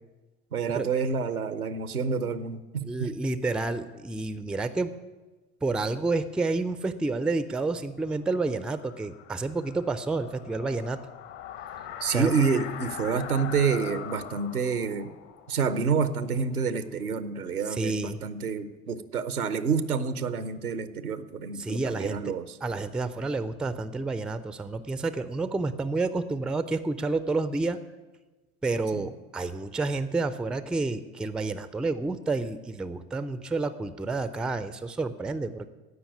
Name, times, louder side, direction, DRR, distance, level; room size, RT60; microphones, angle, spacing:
voice 1, 0.5-3.1 12.0-15.1 15.5-22.6 28.9-29.0, right 5 dB, 85° right, 13 dB, 0.8 m, -28 dB
voice 2, 2.8-4.9 5.6-11.1 12.1-12.3 17.7-18.2 21.5-22.3 22.6-27.8 28.6-35.7, right 3 dB, ahead, 13 dB, 0.4 m, -29 dB
sound 1, 8.1-16.9, left 10 dB, 55° left, 1.2 m, -42 dB
16.0 x 5.8 x 9.4 m, 1.2 s
figure-of-eight pair, 70°, 43 cm